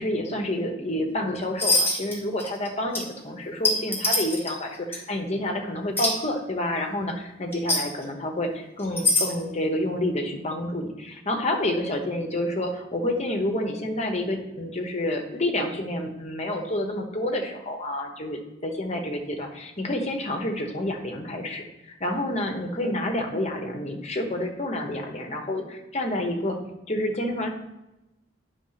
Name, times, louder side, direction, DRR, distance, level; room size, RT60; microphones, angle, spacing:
voice 1, 0.0-26.6 26.9-27.5, left 1 dB, 35° left, 3 dB, 1.0 m, -29 dB
sound 1, 1.6-2.1 2.4-2.7 2.9-3.0 3.6-4.5 4.9-5.0 6.0-6.1 7.5-7.8 8.8-9.3, left 2 dB, 10° left, 1.5 m, -22 dB
9.1 x 3.6 x 5.7 m, 0.97 s
head